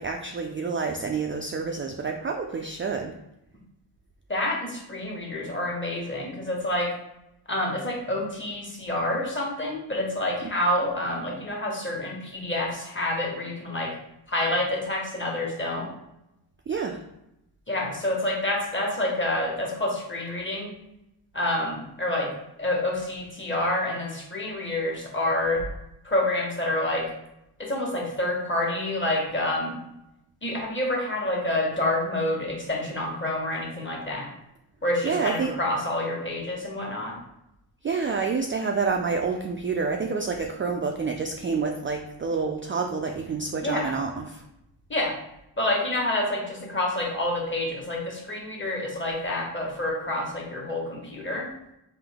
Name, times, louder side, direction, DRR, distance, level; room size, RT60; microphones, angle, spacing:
voice 1, 0.0-3.1 16.7-17.1 35.0-35.5 37.8-44.4, right 5 dB, 30° right, 3 dB, 0.3 m, -28 dB
voice 2, 4.3-6.9 7.5-13.9 14.3-15.9 17.7-20.7 21.3-22.3 22.6-25.6 26.0-27.1 27.6-29.7 30.4-34.3 34.8-37.2 43.6-44.0 44.9-45.2 45.6-51.5, left 1 dB, 25° left, -2 dB, 1.4 m, -28 dB
3.6 x 2.8 x 3.5 m, 0.86 s
cardioid pair, 65°, 47 cm